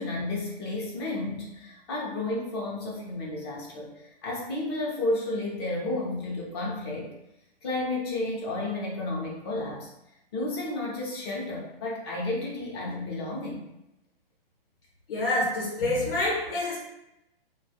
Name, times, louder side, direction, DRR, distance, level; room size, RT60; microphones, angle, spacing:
voice 1, 0.0-7.1 7.6-9.9 10.3-13.6, left 2 dB, 25° left, -3 dB, 0.5 m, -32 dB
voice 2, 15.1-16.8, left 2 dB, 65° left, -5 dB, 0.9 m, -27 dB
2.3 x 2.1 x 2.7 m, 0.87 s
hypercardioid pair, 155°, 30 cm